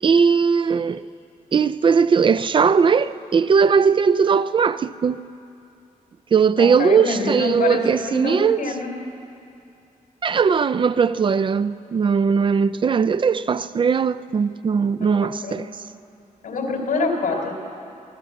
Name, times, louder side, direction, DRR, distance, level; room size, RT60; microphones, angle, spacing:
voice 1, 0.0-1.0 1.5-5.2 6.3-8.6 10.2-15.7, right 6 dB, 35° right, 0.4 m, -19 dB
voice 2, 6.6-7.8 8.1-8.9 15.0-15.6 16.4-17.6, left 3 dB, 80° left, 3.6 m, -25 dB
23.0 x 15.5 x 7.8 m
wide cardioid pair, 180°, 14 cm